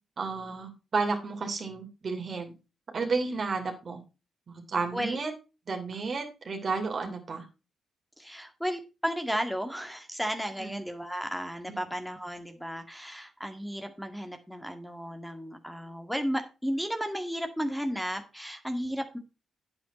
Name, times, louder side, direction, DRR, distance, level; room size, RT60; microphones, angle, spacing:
voice 1, 0.2-2.5 2.9-4.0 4.5-5.3 5.7-7.5 10.6-10.7, right 4 dB, 50° right, 5 dB, 2.9 m, -32 dB
voice 2, 8.2-19.2, equal, ahead, 5 dB, 1.9 m, -34 dB
9.2 x 8.1 x 4.2 m, 0.29 s
hypercardioid pair, 45°, 0 cm